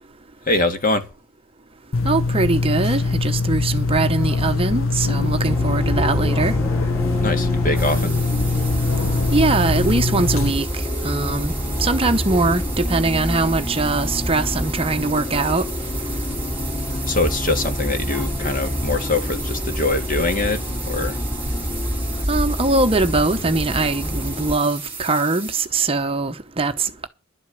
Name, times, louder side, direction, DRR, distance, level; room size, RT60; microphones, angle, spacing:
voice 1, 0.5-1.1 7.2-8.1 17.1-21.2, left 2 dB, 40° left, 1.8 m, -23 dB
sound 1, 1.9-10.5, left 3 dB, 70° left, 0.8 m, -22 dB
voice 2, 2.0-6.5 9.3-10.7 11.0-11.5 11.8-15.6 22.3-27.1, right 3 dB, 25° right, 0.8 m, -21 dB
Bus, 5.4-24.6, left 1 dB, 10° left, 2.9 m, -27 dB
sound 2, 7.7-25.7, right 5 dB, 10° right, 2.5 m, -35 dB
11.5 x 6.4 x 9.0 m
head